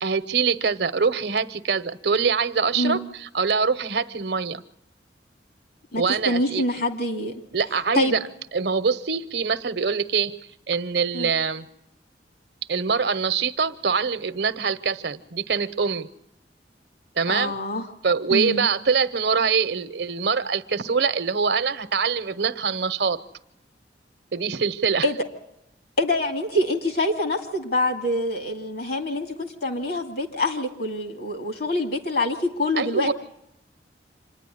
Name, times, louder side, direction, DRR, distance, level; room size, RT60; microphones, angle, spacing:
voice 1, 0.0-4.6 6.0-6.6 7.5-8.2 8.5-10.3 10.7-11.7 12.7-16.1 17.2-17.5 18.0-23.2 24.3-25.1 32.8-33.1, right 5 dB, 70° right, 0.8 m, -24 dB
voice 2, 5.9-7.3 7.9-8.2 11.1-11.3 17.3-17.9 18.3-18.7 25.0-25.1 26.0-33.1, left 1 dB, 60° left, 2.5 m, -25 dB
26.5 x 10.0 x 10.0 m
head